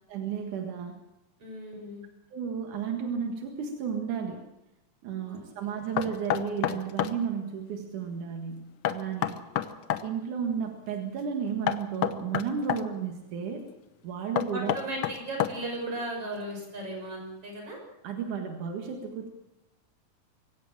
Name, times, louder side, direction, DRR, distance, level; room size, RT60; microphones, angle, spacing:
voice 1, 0.1-0.9 2.3-4.4 5.0-9.4 10.0-13.7 14.0-14.7 18.0-19.3, right 7 dB, 85° right, 4 dB, 3.2 m, -33 dB
voice 2, 1.4-2.0 5.3-5.9 9.5-9.7 14.5-17.8, right 1 dB, 50° right, 1 dB, 7.2 m, -37 dB
Knock, 6.0-7.2 8.9-10.1 11.7-12.9 14.4-15.8, left 11 dB, 65° left, 1.5 m, -29 dB
24.5 x 16.5 x 7.4 m, 0.91 s
omnidirectional pair, 3.4 m